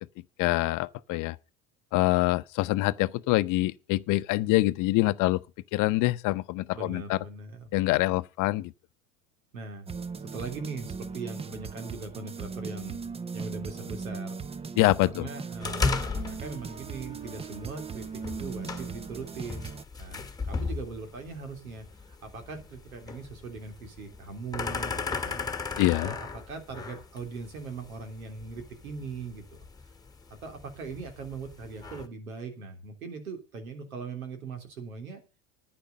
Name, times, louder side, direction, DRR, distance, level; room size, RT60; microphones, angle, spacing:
voice 1, 0.4-1.4 1.9-5.4 5.7-7.2 7.7-8.7 14.8-15.3 25.8-26.1, left 19 dB, 50° left, 0.7 m, -25 dB
voice 2, 6.7-7.8 9.5-9.9 10.3-13.0 13.3-14.4 15.1-19.7 20.0-25.5 26.0-29.6 30.3-35.2, right 4 dB, 85° right, 3.3 m, -40 dB
sound 1, 9.9-19.8, right 5 dB, 15° right, 0.6 m, -39 dB
sound 2, 15.6-32.1, left 4 dB, 10° left, 1.8 m, -36 dB
10.5 x 10.0 x 5.4 m
hypercardioid pair, 90°, 41 cm